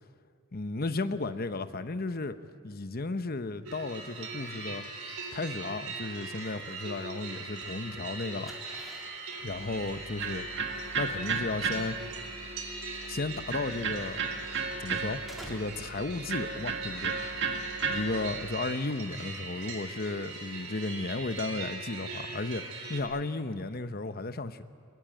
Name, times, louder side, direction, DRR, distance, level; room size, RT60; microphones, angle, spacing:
voice 1, 0.5-2.4 2.6-4.8 5.3-8.5 9.4-10.4 11.0-12.0 13.0-14.2 14.8-17.1 17.9-22.6 22.9-24.6, left 3 dB, 45° left, 10 dB, 0.9 m, -34 dB
sound 1, 3.6-23.0, right 4 dB, 90° right, 4.2 m, -41 dB
sound 2, 8.4-18.4, equal, ahead, 3.6 m, -52 dB
Electric guitar, 9.5-18.6, right 5 dB, 55° right, 2.0 m, -35 dB
22.5 x 21.5 x 8.8 m, 2.3 s
head